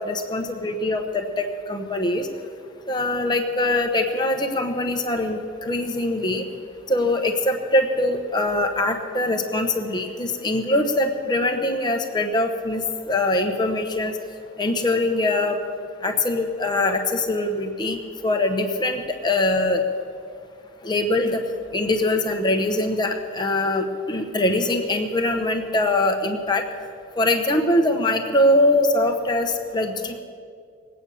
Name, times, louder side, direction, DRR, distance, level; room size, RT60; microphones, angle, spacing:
voice 1, 0.0-2.3 2.9-6.4 6.9-14.1 14.6-15.6 16.0-18.0 18.2-19.8 20.8-21.4 21.7-26.6 27.2-30.2, left 1 dB, 20° left, 5 dB, 0.9 m, -22 dB
19.5 x 8.6 x 7.0 m, 2.2 s
head